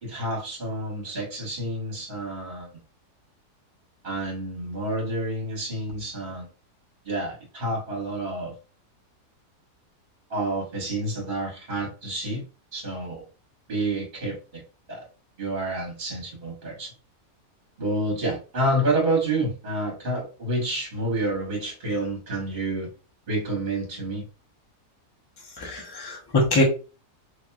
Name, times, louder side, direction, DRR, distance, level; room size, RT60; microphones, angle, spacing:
voice 1, 0.0-2.7 4.0-6.5 7.0-8.5 10.3-12.4 12.7-13.3 13.7-14.6 14.9-15.0 15.4-16.9 17.8-22.9 23.3-24.2, right 1 dB, 35° right, -3 dB, 1.5 m, -29 dB
voice 2, 25.6-26.6, left 2 dB, 35° left, -1 dB, 0.4 m, -23 dB
3.0 x 2.9 x 2.3 m, 0.34 s
omnidirectional pair, 1.7 m